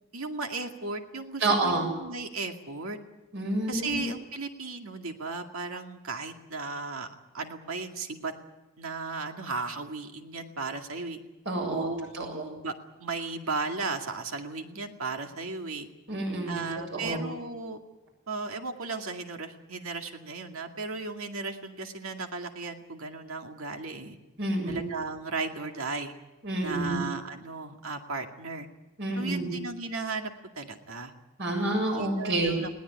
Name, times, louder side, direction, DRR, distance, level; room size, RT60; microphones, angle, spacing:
voice 1, 0.1-3.0 3.7-7.1 7.3-8.3 8.8-11.2 11.7-12.7 13.0-15.9 16.5-17.8 18.3-24.2 24.7-26.1 26.6-28.7 29.2-31.1 31.9-32.7, right 3 dB, 70° right, 4 dB, 2.3 m, -35 dB
voice 2, 1.4-1.8 3.3-4.0 11.5-11.9 12.1-12.4 16.1-16.6 16.9-17.2 24.4-24.8 26.4-27.0 29.0-29.5 31.4-32.6, right 2 dB, 55° right, 2 dB, 7.3 m, -28 dB
20.5 x 18.0 x 10.0 m, 1.0 s
head